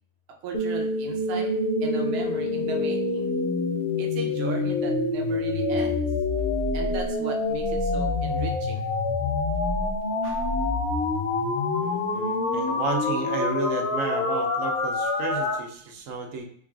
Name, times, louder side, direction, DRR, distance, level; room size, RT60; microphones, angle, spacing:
voice 1, 0.4-1.5 1.8-3.3 4.0-6.1 6.7-8.9 10.2-10.5, right 4 dB, 60° right, 1 dB, 0.8 m, -36 dB
sound 1, 0.5-15.6, left 2 dB, 60° left, 0.9 m, -26 dB
voice 2, 11.8-16.5, right 3 dB, 85° right, 2 dB, 1.0 m, -32 dB
4.7 x 2.4 x 2.3 m, 0.62 s
omnidirectional pair, 1.3 m